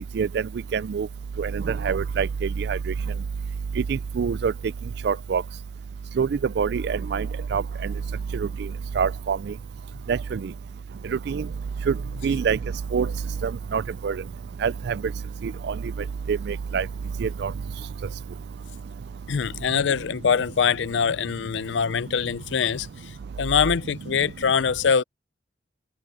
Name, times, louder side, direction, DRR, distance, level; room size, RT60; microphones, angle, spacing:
voice 1, 0.7-1.1 1.4-2.3 2.7-2.8 3.9-4.5 5.0-5.4 6.2-6.3 6.6-7.3 7.5-7.6 9.0-9.4 10.1-10.4 11.3-11.4 11.9-12.0 12.2-12.6 12.9-13.1 13.4-14.1 14.6-14.7 16.3-16.4 16.7-16.8 17.2-17.5, right 6 dB, 60° right, 0.3 m, -24 dB
voice 2, 19.3-25.0, left 6 dB, 75° left, 0.5 m, -23 dB
head